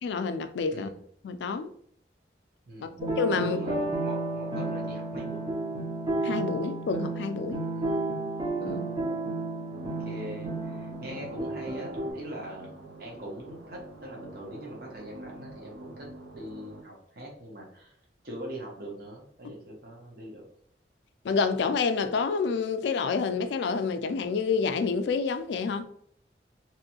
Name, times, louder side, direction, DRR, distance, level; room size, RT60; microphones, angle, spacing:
voice 1, 0.0-0.9 1.2-1.7 2.8-3.6 6.2-7.6 8.6-8.8 21.2-25.9, left 5 dB, 80° left, 0.3 m, -28 dB
voice 2, 0.7-1.0 2.7-3.0 3.4-5.4 7.7-8.0 8.6-9.0 9.7-9.8 10.1-18.0 18.2-20.5, right 1 dB, 60° right, 0.8 m, -42 dB
sound 1, 3.0-12.1, right 2 dB, 25° right, 0.5 m, -32 dB
sound 2, 9.7-16.8, right 2 dB, 90° right, 0.5 m, -46 dB
2.9 x 2.6 x 2.8 m
head